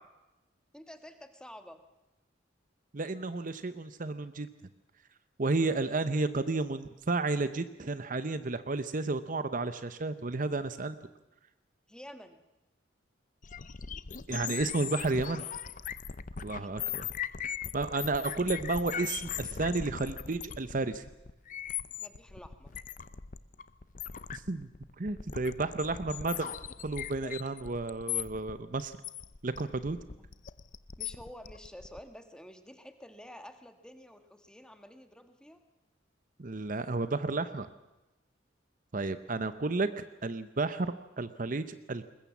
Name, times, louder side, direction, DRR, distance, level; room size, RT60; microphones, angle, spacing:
voice 1, 0.7-1.8 11.9-12.4 16.6-16.7 22.0-22.8 30.1-30.3 31.0-35.6, equal, 5° left, 7 dB, 1.5 m, -50 dB
voice 2, 2.9-4.5 5.4-11.0 14.3-15.4 16.4-17.1 17.7-21.0 24.3-24.7 25.0-26.5 26.8-29.0 29.4-30.0 36.4-37.7 38.9-42.0, right 3 dB, 45° right, 12 dB, 0.8 m, -32 dB
sound 1, 13.4-32.0, left 8 dB, 40° left, 0.7 m, -39 dB
21.5 x 20.5 x 7.3 m, 1.0 s
head